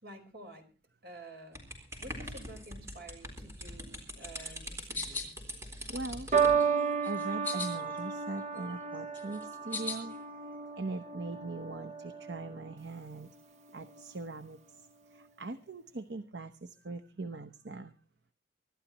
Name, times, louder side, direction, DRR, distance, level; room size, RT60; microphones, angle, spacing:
voice 1, 0.0-0.7 1.0-1.6 2.0-5.3, right 1 dB, 60° right, 5 dB, 4.8 m, -50 dB
sound 1, 1.5-6.6, equal, 15° right, 4.1 m, -42 dB
sound 2, 4.2-5.3 5.8-6.7 7.0-8.1 8.4-10.2, left 4 dB, 10° left, 6.2 m, -40 dB
voice 2, 5.9-6.3 7.0-10.1 10.8-13.4 13.7-14.8 15.1-17.9, right 3 dB, 80° right, 10 dB, 0.9 m, -41 dB
sound 3, 6.3-12.8 13.7-14.1, right 6 dB, 40° right, 1.0 m, -33 dB
25.0 x 13.0 x 3.0 m, 0.34 s
head